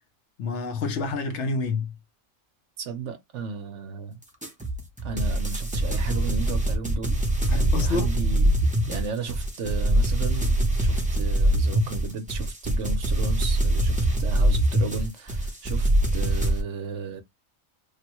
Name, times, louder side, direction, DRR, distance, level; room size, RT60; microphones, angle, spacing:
voice 1, 0.4-1.9 7.5-8.1 8.4-8.7, left 4 dB, 60° left, 1.0 m, -28 dB
voice 2, 2.8-4.1 5.0-7.2 7.5-17.2, right 5 dB, 65° right, 0.9 m, -34 dB
sound 1, 4.4-16.6, right 1 dB, 10° right, 0.6 m, -23 dB
3.3 x 2.2 x 2.9 m
omnidirectional pair, 1.5 m